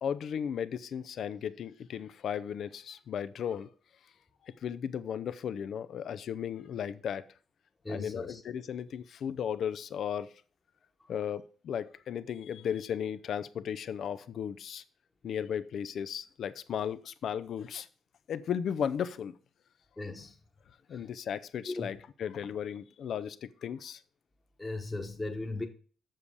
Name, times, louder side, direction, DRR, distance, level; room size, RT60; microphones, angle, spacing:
voice 1, 0.0-3.7 4.4-7.3 7.9-10.3 11.1-14.8 15.2-17.9 18.3-19.4 20.9-24.0, left 8 dB, 65° left, 0.6 m, -35 dB
voice 2, 7.8-8.4 20.0-20.3 20.9-21.0 21.6-21.9 24.6-25.7, left 2 dB, 20° left, 1.2 m, -37 dB
7.6 x 7.0 x 4.8 m
cardioid pair, 90°, 0 cm